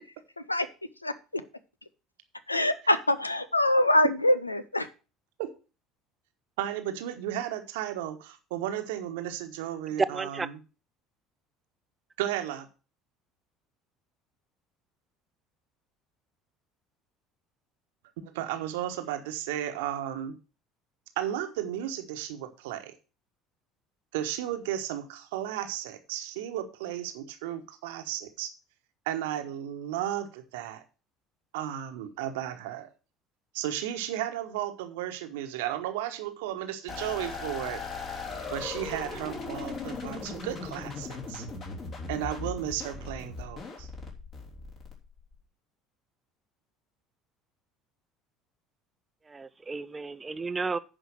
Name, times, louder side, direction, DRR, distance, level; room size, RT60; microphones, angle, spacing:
voice 1, 1.0-1.4 2.5-4.3 4.7-4.9, left 1 dB, 85° left, 0.6 m, -24 dB
voice 2, 6.6-10.6 12.2-12.7 18.2-20.3 21.2-22.9 24.1-28.5 29.0-30.8 31.5-32.9 33.5-37.8 38.5-41.5 42.1-43.9, right 11 dB, 65° right, 1.2 m, -34 dB
voice 3, 10.1-10.5 49.3-50.8, right 4 dB, 20° right, 0.7 m, -34 dB
sound 1, 36.9-45.3, left 4 dB, 45° left, 3.6 m, -38 dB
10.0 x 5.1 x 6.3 m
figure-of-eight pair, 60°, 0 cm